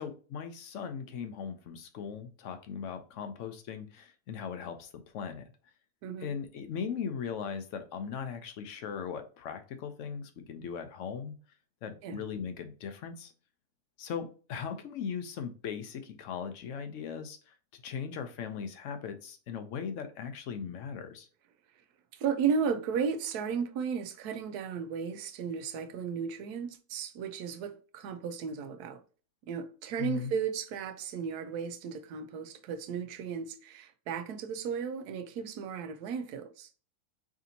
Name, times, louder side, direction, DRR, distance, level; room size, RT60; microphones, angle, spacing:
voice 1, 0.0-5.4 6.2-11.3 11.8-13.3 14.0-17.4 17.7-21.3 30.0-30.3, left 7 dB, 65° left, 0.8 m, -38 dB
voice 2, 6.0-6.3 12.0-12.2 22.1-29.0 29.5-36.7, right 6 dB, 85° right, 1.1 m, -34 dB
4.9 x 2.7 x 2.7 m
omnidirectional pair, 1.6 m